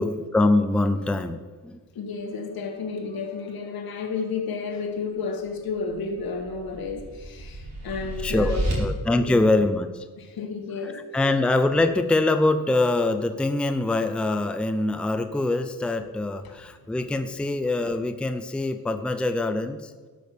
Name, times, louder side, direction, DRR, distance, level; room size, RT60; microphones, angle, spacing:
voice 1, 0.0-1.8 8.2-10.0 10.8-19.9, left 2 dB, 5° left, 9 dB, 0.5 m, -24 dB
voice 2, 2.0-8.8 9.2-9.5 10.2-11.0 16.4-16.9, left 5 dB, 80° left, 3 dB, 2.0 m, -32 dB
sound 1, 5.9-8.7, right 1 dB, 50° right, 3.6 m, -31 dB
12.5 x 6.2 x 6.8 m, 1.4 s
wide cardioid pair, 145°, 36 cm